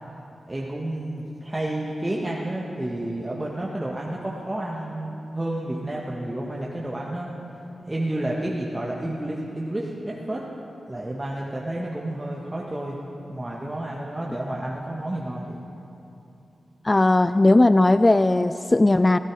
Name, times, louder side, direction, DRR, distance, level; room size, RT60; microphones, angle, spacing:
voice 1, 0.5-7.3 7.8-10.4 10.9-13.0 13.3-15.6, right 1 dB, 20° right, -4 dB, 1.7 m, -30 dB
voice 2, 16.9-19.2, left 2 dB, 30° left, 12 dB, 0.3 m, -17 dB
16.0 x 13.5 x 4.8 m, 2.9 s
cardioid pair, 45°, 0 cm